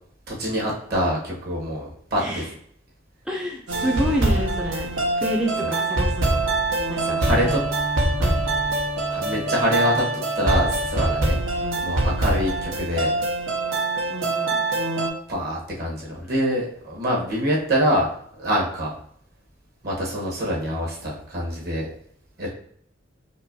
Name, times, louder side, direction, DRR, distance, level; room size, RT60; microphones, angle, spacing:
voice 1, 0.3-2.4 5.6-5.7 7.0-7.6 9.1-10.0 10.3-13.1 15.3-18.1 18.4-18.9 19.8-21.9 22.4-22.5, equal, 55° right, -4 dB, 1.3 m, -25 dB
voice 2, 2.2-2.5 3.3-4.9 5.2-6.4 6.9-7.6 8.2-8.4 11.6-11.9 14.1-14.6, equal, 5° right, -2 dB, 0.4 m, -29 dB
sound 1, 3.7-15.1, right 2 dB, 90° right, 0.8 m, -24 dB
5.2 x 2.2 x 2.7 m, 0.65 s
head